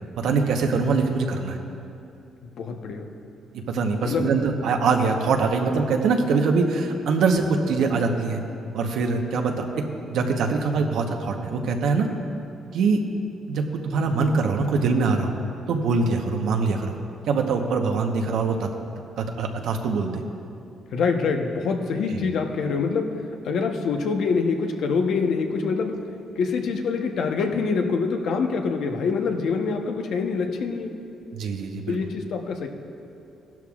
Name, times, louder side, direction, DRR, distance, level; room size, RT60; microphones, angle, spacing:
voice 1, 0.2-1.6 3.7-8.4 8.7-9.6 10.1-12.1 12.7-13.0 13.5-15.3 15.7-17.0 17.3-18.7 19.2-20.2 22.1-22.2 31.3-32.0, right 4 dB, 80° right, 3 dB, 1.0 m, -23 dB
voice 2, 2.6-3.0 4.0-4.3 20.9-23.2 23.4-26.0 26.4-30.9 31.9-32.7, left 5 dB, 75° left, 4 dB, 0.9 m, -25 dB
16.0 x 12.0 x 2.4 m, 2.6 s
cardioid pair, 90°, 0 cm